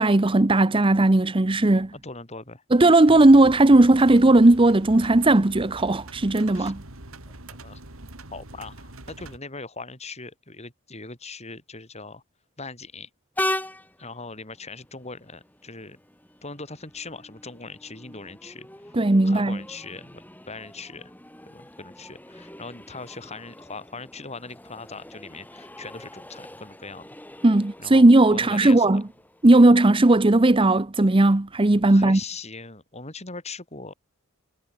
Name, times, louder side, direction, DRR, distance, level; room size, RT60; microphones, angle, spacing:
voice 1, 0.0-1.9 2.7-6.8 18.9-19.6 27.4-29.0 29.4-32.2, right 2 dB, 25° right, 0.7 m, -17 dB
voice 2, 1.9-2.6 6.5-6.7 7.5-7.8 8.3-12.2 12.6-13.1 14.0-16.0 16.4-18.7 19.2-21.1 21.5-27.1 27.8-29.0 31.9-33.9, left 3 dB, 30° left, 5.7 m, -40 dB
sound 1, 3.1-9.4, right 2 dB, 75° right, 4.0 m, -43 dB
Train, 13.4-30.6, left 1 dB, 10° left, 3.8 m, -40 dB
head